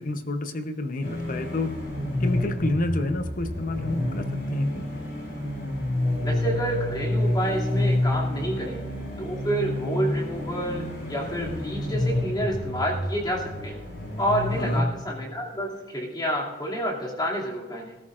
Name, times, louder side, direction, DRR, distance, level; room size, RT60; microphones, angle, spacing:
voice 1, 0.0-1.7 2.2-4.9 14.6-14.9, left 2 dB, 50° left, 9 dB, 0.8 m, -29 dB
sound 1, 1.0-14.8, left 1 dB, 65° left, 5.1 m, -29 dB
voice 2, 6.2-8.8 9.2-13.8 14.2-18.0, equal, 25° left, -3 dB, 2.5 m, -29 dB
19.5 x 13.0 x 2.5 m, 1.2 s
head